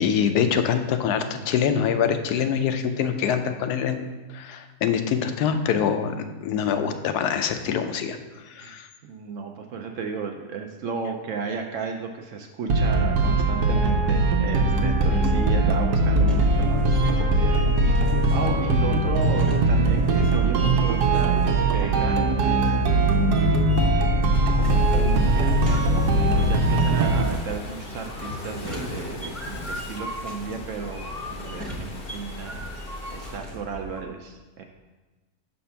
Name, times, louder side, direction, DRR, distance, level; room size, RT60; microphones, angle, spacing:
voice 1, 0.0-6.1 6.4-8.2 8.5-8.9, left 7 dB, 80° left, 8 dB, 1.1 m, -24 dB
voice 2, 9.0-22.8 23.0-23.6 24.6-32.8 33.1-34.6, right 5 dB, 70° right, 3 dB, 0.8 m, -34 dB
sound 1, 12.7-27.3, right 2 dB, 90° right, 1.3 m, -20 dB
sound 2, 16.3-34.0, equal, ahead, 0.7 m, -39 dB
Waves surf, 24.6-33.4, left 3 dB, 50° left, 0.7 m, -40 dB
5.7 x 4.2 x 5.5 m, 1.2 s
omnidirectional pair, 1.7 m